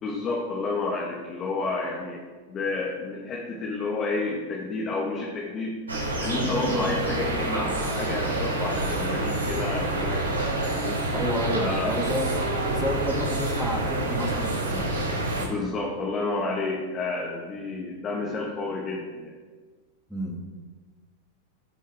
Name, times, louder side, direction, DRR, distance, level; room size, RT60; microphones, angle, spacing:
voice 1, 0.0-5.8 6.2-10.2 10.6-11.0 11.6-11.9 15.4-19.3, left 3 dB, 35° left, -3 dB, 1.8 m, -30 dB
sound 1, 5.9-15.5, right 2 dB, 85° right, 2.7 m, -27 dB
voice 2, 11.1-12.3 12.7-14.9 20.1-20.4, equal, ahead, -1 dB, 2.4 m, -30 dB
16.0 x 5.4 x 3.7 m, 1.4 s
hypercardioid pair, 100°, 0 cm